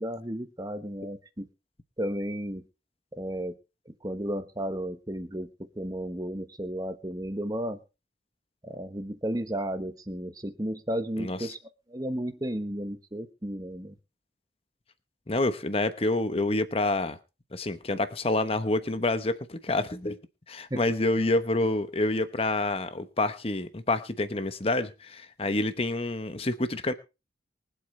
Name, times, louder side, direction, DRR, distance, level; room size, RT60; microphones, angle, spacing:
voice 1, 0.0-1.5 2.0-2.6 3.1-3.5 3.9-5.5 5.8-7.8 8.6-11.6 11.9-13.9 20.7-20.8, right 1 dB, 20° right, 8 dB, 1.3 m, -33 dB
voice 2, 11.2-11.5 15.3-17.2 17.5-20.2 20.5-26.9, left 2 dB, 35° left, 11 dB, 1.0 m, -28 dB
24.0 x 8.2 x 3.3 m, 0.29 s
head